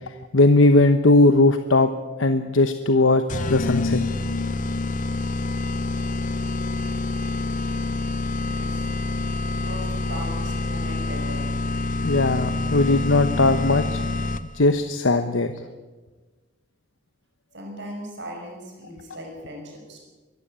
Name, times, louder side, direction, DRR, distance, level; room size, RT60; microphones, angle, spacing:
voice 1, 0.0-1.9 2.2-4.0 12.0-14.0 14.5-15.5, left 2 dB, 85° left, 9 dB, 1.0 m, -19 dB
sound 1, 3.3-14.7, left 2 dB, 40° left, 0.7 m, -27 dB
voice 2, 8.4-8.9 9.5-11.5 17.5-20.0, equal, 65° right, 1 dB, 5.9 m, -38 dB
23.5 x 14.5 x 9.0 m, 1.3 s
head